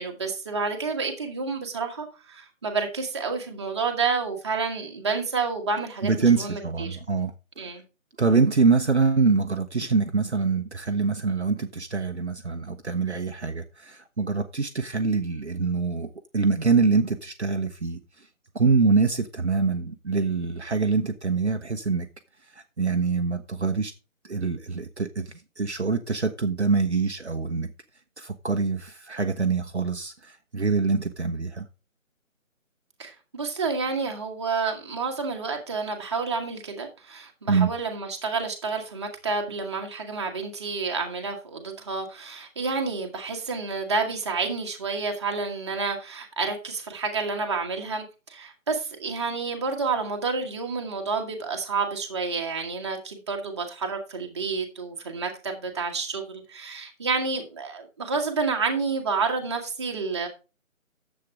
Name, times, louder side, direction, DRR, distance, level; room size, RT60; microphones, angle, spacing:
voice 1, 0.0-7.0 7.6-7.8 33.0-48.0 48.3-60.3, right 4 dB, 20° right, 1.4 m, -29 dB
voice 2, 6.0-7.3 8.2-16.1 16.3-18.0 18.5-22.1 22.5-23.9 24.2-27.7 28.2-31.7 37.5-37.7, right 4 dB, 55° right, 1.0 m, -24 dB
10.0 x 7.7 x 3.6 m
figure-of-eight pair, 155°, 41 cm